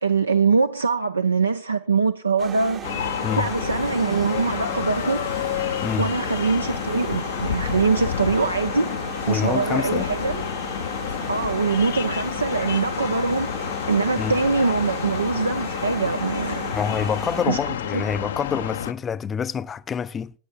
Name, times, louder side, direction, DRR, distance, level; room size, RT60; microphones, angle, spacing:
voice 1, 0.0-2.8 3.4-5.3 6.0-8.9 9.3-10.4 11.3-13.5 13.9-16.7 17.5-17.6 17.9-18.0, right 4 dB, 80° right, 0.5 m, -23 dB
sound 1, 2.4-17.4, right 8 dB, 25° right, 0.8 m, -37 dB
sound 2, 2.8-18.9, left 9 dB, 60° left, 0.6 m, -29 dB
voice 2, 9.3-10.1 14.2-14.3 16.7-20.3, left 7 dB, 20° left, 0.4 m, -27 dB
9.6 x 9.0 x 6.1 m
figure-of-eight pair, 90°, 0 cm